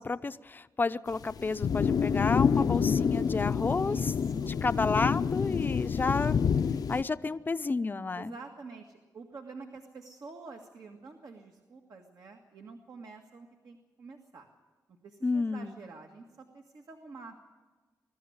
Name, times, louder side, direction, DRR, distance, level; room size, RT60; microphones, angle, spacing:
voice 1, 0.0-4.1 4.5-6.4 6.9-8.3 15.2-15.8, left 3 dB, 30° left, 12 dB, 0.6 m, -31 dB
sound 1, 1.1-7.0, left 7 dB, 70° left, 0.6 m, -28 dB
voice 2, 3.9-4.7 8.1-14.5 15.0-17.4, right 4 dB, 70° right, 3 dB, 1.8 m, -48 dB
22.5 x 13.0 x 9.5 m, 1.3 s
wide cardioid pair, 115°, 7 cm